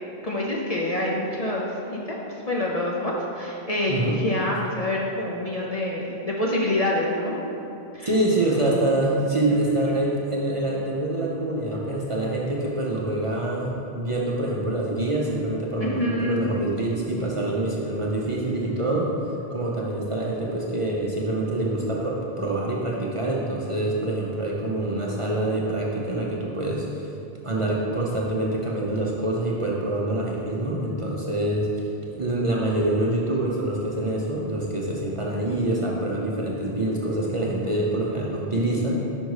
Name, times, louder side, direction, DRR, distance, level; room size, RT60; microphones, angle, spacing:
voice 1, 0.2-2.2 2.5-7.4 7.9-8.1 15.8-16.4, left 1 dB, 45° left, -3 dB, 0.6 m, -26 dB
voice 2, 3.9-4.2 8.0-19.1 19.5-27.1 27.4-38.9, right 1 dB, 35° right, -4 dB, 0.6 m, -26 dB
5.3 x 5.2 x 4.7 m, 2.9 s
omnidirectional pair, 1.1 m